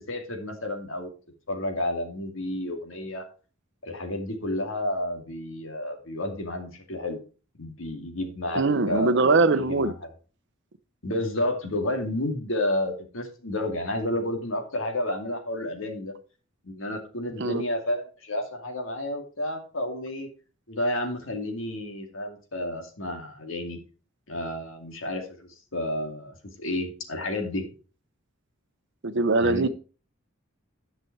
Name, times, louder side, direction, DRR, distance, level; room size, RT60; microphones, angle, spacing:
voice 1, 0.1-1.1 1.5-3.2 3.8-7.2 7.6-9.2 9.5-10.1 11.0-16.1 16.6-20.3 20.7-23.8 24.3-27.6 29.4-29.7, left 1 dB, 75° left, 2.4 m, -31 dB
voice 2, 8.5-9.9 17.4-17.6 29.0-29.7, right 3 dB, 60° right, 0.8 m, -22 dB
10.5 x 6.0 x 4.6 m
head